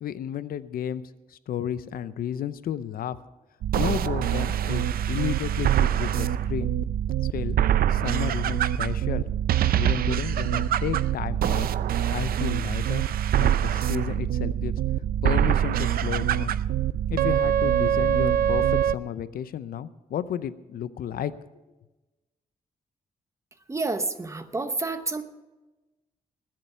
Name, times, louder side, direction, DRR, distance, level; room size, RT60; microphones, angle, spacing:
voice 1, 0.0-1.0 1.3-3.2 3.7-6.7 7.3-7.6 7.9-9.3 9.7-11.7 12.1-13.1 13.4-14.7 15.2-16.6 17.1-21.3, left 10 dB, 80° left, 15 dB, 0.6 m, -32 dB
sound 1, 3.6-18.9, right 10 dB, 90° right, 0.5 m, -24 dB
voice 2, 23.7-25.2, right 3 dB, 20° right, 9 dB, 0.8 m, -29 dB
20.5 x 7.6 x 5.5 m, 1.1 s
wide cardioid pair, 160°, 15 cm